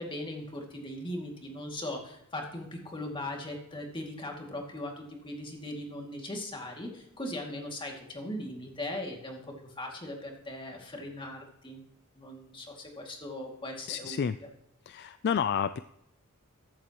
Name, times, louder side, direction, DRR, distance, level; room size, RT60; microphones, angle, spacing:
voice 1, 0.0-11.8 12.2-14.5, left 1 dB, 20° left, 1 dB, 2.3 m, -39 dB
voice 2, 13.9-14.4 14.9-15.8, left 7 dB, 50° left, 13 dB, 0.3 m, -30 dB
14.5 x 13.0 x 3.0 m, 0.80 s
head